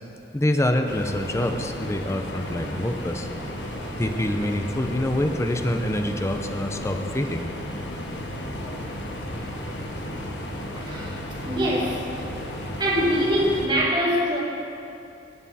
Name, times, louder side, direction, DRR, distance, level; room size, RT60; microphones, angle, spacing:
voice 1, 0.3-3.3 4.0-7.5, left 1 dB, 15° left, 5 dB, 0.6 m, -26 dB
sound 1, 0.9-13.7, equal, 70° left, 1.4 m, -34 dB
voice 2, 10.8-11.2 11.5-12.0 12.8-14.4, equal, 25° right, -5 dB, 2.1 m, -23 dB
16.5 x 7.9 x 4.2 m, 2.6 s
head